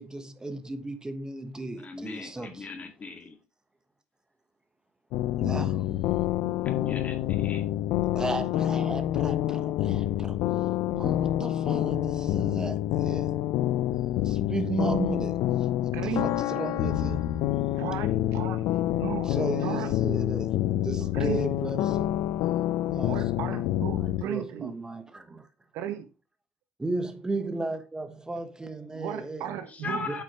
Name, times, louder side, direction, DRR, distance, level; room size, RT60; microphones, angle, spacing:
voice 1, 0.0-2.7 5.4-6.2 8.1-10.4 11.0-13.4 14.2-15.7 16.0-17.6 19.2-22.1 22.9-23.6 24.0-25.5 26.8-29.5 29.8-30.2, right 3 dB, 15° right, 1.1 m, -35 dB
voice 2, 1.8-3.4 6.6-7.6 29.7-30.2, left 4 dB, 30° left, 2.0 m, -38 dB
sound 1, 5.1-24.2, left 13 dB, 70° left, 0.5 m, -27 dB
voice 3, 15.9-16.3 17.7-18.6 19.0-19.3 19.6-20.0 21.1-21.4 23.1-24.8 25.7-26.1 28.9-30.2, right 10 dB, 70° right, 1.1 m, -35 dB
8.4 x 6.2 x 3.0 m
supercardioid pair, 80°, 5 cm